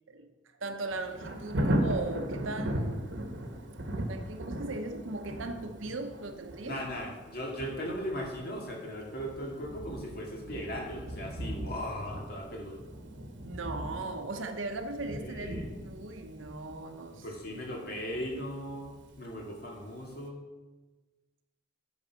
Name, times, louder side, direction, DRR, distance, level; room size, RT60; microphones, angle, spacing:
voice 1, 0.6-3.1 4.0-6.8 13.4-15.5 15.8-17.2, right 2 dB, 85° right, 6 dB, 0.9 m, -38 dB
Thunder, 0.9-19.7 20.1-20.2, right 1 dB, 65° right, 1.1 m, -38 dB
voice 2, 6.6-12.8 15.2-15.7 17.1-20.4, equal, 50° left, -1 dB, 2.2 m, -38 dB
8.8 x 6.5 x 5.7 m, 1.2 s
head